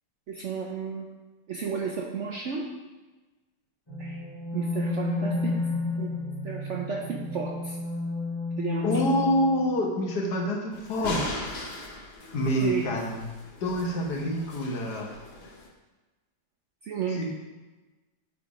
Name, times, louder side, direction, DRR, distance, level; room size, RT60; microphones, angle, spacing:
voice 1, 0.3-1.1 1.5-2.7 4.0-4.2 4.5-5.6 6.0-6.1 6.4-7.8 8.6-9.0 12.6-12.9 16.8-17.2, right 6 dB, 70° right, 0 dB, 0.7 m, -32 dB
sound 1, 3.9-9.7, left 2 dB, 15° left, 1.5 m, -31 dB
voice 2, 8.8-11.6 12.3-13.2 13.6-15.1 17.1-17.2, left 1 dB, 70° left, 0 dB, 1.7 m, -27 dB
sound 2, 10.7-15.7, left 1 dB, 40° left, 1.1 m, -39 dB
8.2 x 3.5 x 4.8 m, 1.2 s
omnidirectional pair, 1.8 m